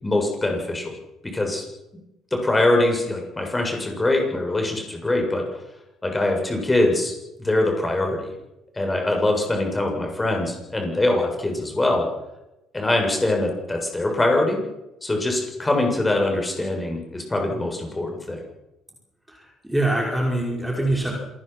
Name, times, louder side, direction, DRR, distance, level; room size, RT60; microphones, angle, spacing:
voice 1, 0.0-0.9 1.2-1.6 2.3-5.5 6.0-8.3 8.8-12.1 12.7-14.6 15.0-18.4, left 2 dB, 15° left, 2 dB, 7.4 m, -23 dB
voice 2, 19.3-21.1, right 1 dB, 5° right, -1 dB, 5.3 m, -24 dB
27.0 x 18.5 x 6.0 m, 0.95 s
figure-of-eight pair, 50°, 0 cm